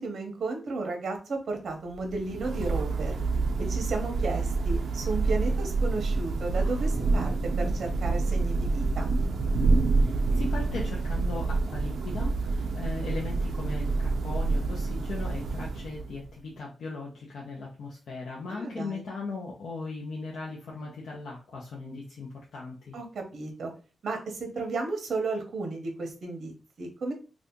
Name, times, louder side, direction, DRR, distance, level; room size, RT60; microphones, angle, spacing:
voice 1, 0.0-3.1 3.6-9.1 18.5-19.1 22.9-23.7 24.0-26.5 26.8-27.1, right 3 dB, 60° right, 3 dB, 0.9 m, -33 dB
Thunder / Rain, 1.9-16.3, right 3 dB, 80° right, 0.4 m, -27 dB
voice 2, 10.0-23.0, left 3 dB, 85° left, -3 dB, 0.7 m, -38 dB
2.7 x 2.5 x 3.6 m, 0.34 s
wide cardioid pair, 170°, 0 cm